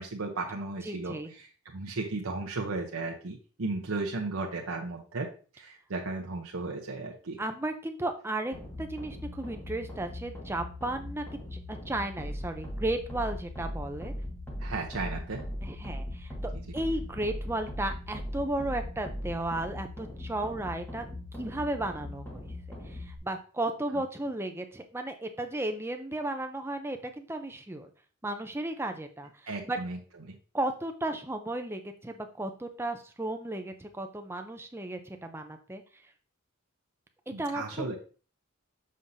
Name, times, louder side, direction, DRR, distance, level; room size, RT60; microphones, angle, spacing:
voice 1, 0.0-5.3 5.5-7.4 14.6-15.4 29.5-30.0 30.3-30.4 37.3-38.0, right 3 dB, 80° right, 0 dB, 0.8 m, -35 dB
voice 2, 0.8-1.3 7.4-11.3 11.5-14.1 15.6-21.0 21.3-27.9 28.2-29.8 30.5-35.8 37.3-37.9, right 1 dB, 10° right, 6 dB, 0.5 m, -34 dB
sound 1, 8.5-23.2, left 1 dB, 10° left, 1.2 m, -39 dB
6.4 x 5.5 x 2.7 m, 0.37 s
head